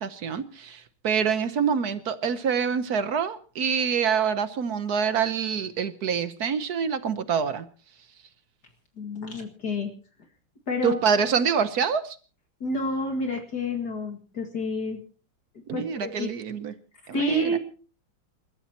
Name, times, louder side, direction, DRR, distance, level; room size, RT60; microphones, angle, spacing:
voice 1, 0.0-7.7 10.8-12.2 15.7-16.7 17.1-17.6, right 6 dB, 55° right, 1.2 m, -26 dB
voice 2, 9.0-9.9 10.7-11.0 12.6-15.0 15.7-16.3 17.1-17.6, left 1 dB, 50° left, 2.5 m, -29 dB
28.5 x 13.5 x 3.0 m
omnidirectional pair, 2.3 m